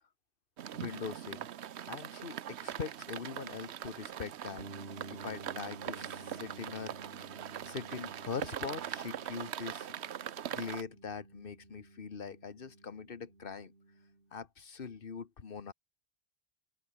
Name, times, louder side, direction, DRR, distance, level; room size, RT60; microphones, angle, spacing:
sound 1, 0.6-10.8, right 10 dB, 85° right, 1.0 m, -42 dB
voice 1, 0.7-1.5 1.8-4.7 5.1-7.0 7.6-9.9 10.5-13.7 14.3-15.7, left 5 dB, 60° left, 1.4 m, -42 dB
sound 2, 4.6-14.3, right 2 dB, 70° right, 3.9 m, -52 dB
open air
omnidirectional pair, 1.1 m